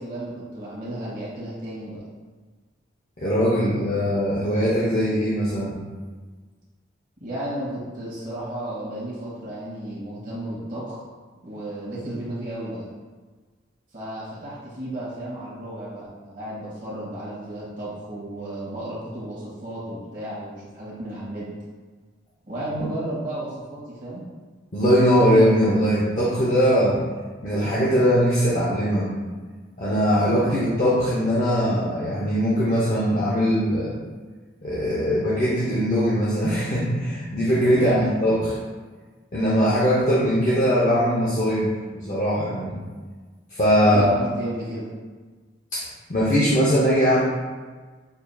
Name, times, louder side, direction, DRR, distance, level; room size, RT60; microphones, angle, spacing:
voice 1, 0.0-2.0 7.2-11.0 11.4-12.9 13.9-21.5 22.4-24.2 37.7-38.1 43.8-44.9, right 1 dB, 45° right, -8 dB, 1.3 m, -33 dB
voice 2, 3.2-5.8 24.7-27.0 27.4-29.1 29.8-33.9 34.6-38.5 39.3-42.8 43.5-44.1 45.7-47.2, equal, 40° left, -8 dB, 0.8 m, -21 dB
6.8 x 2.8 x 2.3 m, 1.4 s
head